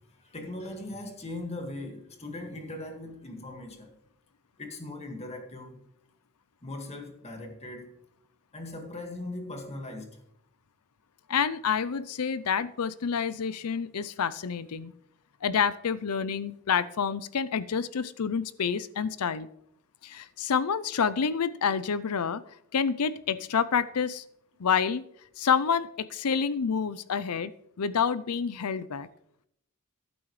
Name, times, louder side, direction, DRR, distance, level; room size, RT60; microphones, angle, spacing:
voice 1, 0.2-3.9 4.6-5.8 6.6-7.9 8.5-10.1, left 2 dB, 30° left, 2.0 m, -39 dB
voice 2, 11.3-14.9 15.4-19.5 20.0-22.4 22.7-24.2 24.6-25.0 25.4-27.5 27.8-29.1, left 6 dB, 85° left, 0.6 m, -28 dB
14.5 x 12.0 x 3.2 m
head